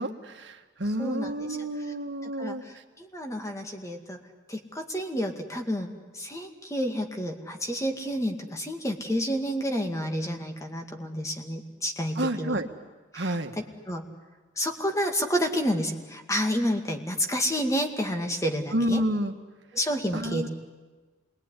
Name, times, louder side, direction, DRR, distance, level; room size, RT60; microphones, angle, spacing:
voice 1, 0.0-2.8 12.1-12.7 13.1-13.5 18.7-19.3 20.1-20.5, right 1 dB, 65° right, 5 dB, 1.7 m, -29 dB
voice 2, 1.0-1.5 1.8-1.9 2.2-4.2 4.5-12.6 13.1-13.3 13.9-14.1 14.6-19.0 19.7-20.5, equal, 15° left, 4 dB, 2.1 m, -30 dB
27.0 x 21.5 x 9.9 m, 1.3 s
head